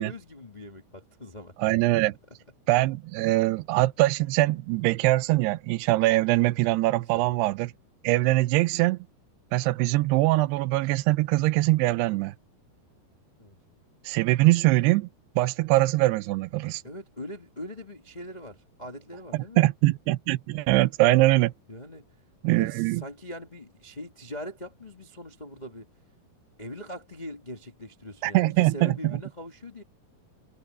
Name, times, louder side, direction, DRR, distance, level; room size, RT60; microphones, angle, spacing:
voice 1, 0.0-1.5 7.1-7.4 8.1-8.4 13.4-13.5 16.8-19.6 21.7-22.1 22.5-25.9 26.6-29.8, left 1 dB, 45° left, 0.5 m, -41 dB
voice 2, 1.6-2.1 2.7-7.7 8.0-9.0 9.5-12.3 14.1-15.1 15.4-16.8 19.3-21.5 22.4-23.0 28.2-29.2, right 19 dB, 85° right, 2.7 m, -23 dB
omnidirectional pair, 4.7 m